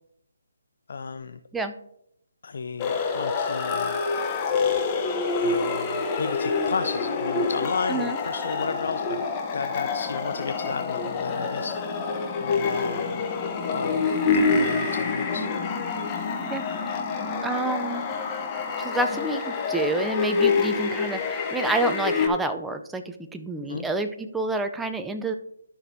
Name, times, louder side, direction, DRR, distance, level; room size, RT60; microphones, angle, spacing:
voice 1, 0.9-1.4 2.4-4.0 5.4-9.2 9.5-13.2 13.7-14.1 14.3-15.5 23.7-23.9, left 5 dB, 60° left, 9 dB, 0.4 m, -33 dB
sound 1, 2.8-22.3, left 4 dB, 25° left, 0.9 m, -27 dB
voice 2, 17.4-18.0 18.8-25.4, right 2 dB, 5° right, 7 dB, 0.5 m, -28 dB
12.0 x 5.9 x 2.7 m, 0.76 s
figure-of-eight pair, 150°, 0 cm